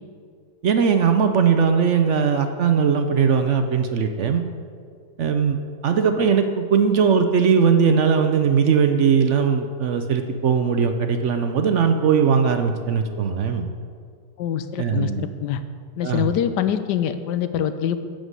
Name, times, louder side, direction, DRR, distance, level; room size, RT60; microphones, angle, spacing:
voice 1, 0.6-4.4 5.2-13.7 14.8-15.3 16.0-16.3, right 6 dB, 65° right, 7 dB, 0.7 m, -19 dB
voice 2, 14.4-15.6 16.0-18.0, left 9 dB, 80° left, 11 dB, 1.2 m, -24 dB
11.5 x 5.1 x 8.0 m, 2.1 s
omnidirectional pair, 1.8 m